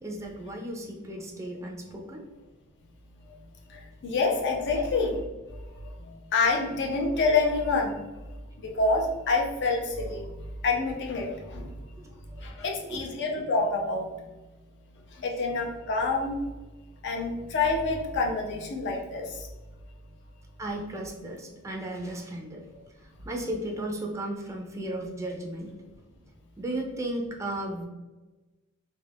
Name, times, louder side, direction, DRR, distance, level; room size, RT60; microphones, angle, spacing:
voice 1, 0.0-2.2 4.7-4.9 12.0-12.4 12.9-13.0 20.6-22.6 23.2-25.7 26.6-27.9, right 1 dB, 15° right, 0 dB, 0.4 m, -35 dB
voice 2, 3.7-5.2 6.0-8.0 8.6-10.3 10.6-11.7 12.4-14.1 15.1-16.5 17.0-19.5, left 3 dB, 55° left, 0 dB, 0.5 m, -27 dB
2.4 x 2.1 x 3.4 m, 1.2 s
head